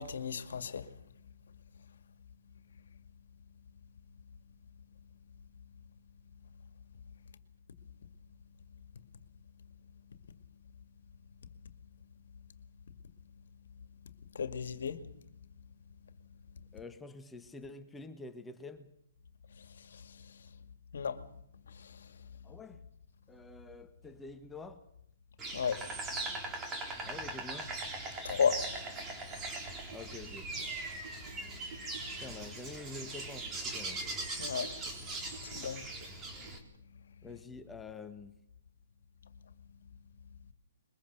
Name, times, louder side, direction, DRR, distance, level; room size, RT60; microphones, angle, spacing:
voice 1, 0.0-1.3 1.8-2.0 2.7-3.0 8.9-9.0 10.3-10.4 11.6-11.7 13.8-15.1 16.0-16.7 19.5-20.6 20.9-21.3 21.7-22.6 25.5-25.9 26.2-26.4 28.2-29.4 31.3-31.7 32.0-32.1 34.4-35.9 36.9-37.3 39.2-39.9, left 6 dB, 70° left, 2.1 m, -38 dB
voice 2, 16.7-18.9 22.4-22.8 23.3-24.8 27.0-27.7 29.9-30.6 32.2-34.0 37.2-38.4, left 3 dB, 10° left, 1.4 m, -47 dB
Insect, 25.4-36.6, right 2 dB, 20° right, 3.7 m, -40 dB
sound 1, 29.5-36.6, right 4 dB, 50° right, 7.0 m, -56 dB
22.0 x 22.0 x 6.7 m
hypercardioid pair, 135°, 0 cm